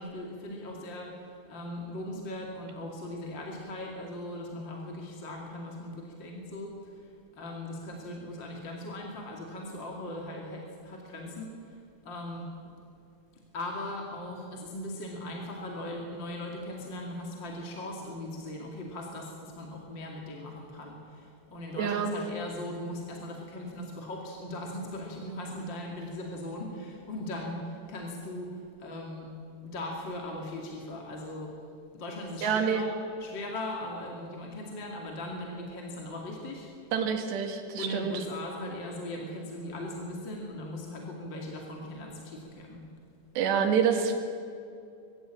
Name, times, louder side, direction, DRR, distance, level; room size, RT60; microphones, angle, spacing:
voice 1, 0.0-12.7 13.5-29.3 29.6-31.5 31.9-32.9 33.2-36.9 37.7-42.8, left 1 dB, 35° left, 0 dB, 2.4 m, -39 dB
voice 2, 21.8-22.1 32.4-32.8 36.9-38.2 43.4-44.2, right 7 dB, 80° right, 5 dB, 4.0 m, -27 dB
22.5 x 16.0 x 8.7 m, 2.5 s
omnidirectional pair, 4.9 m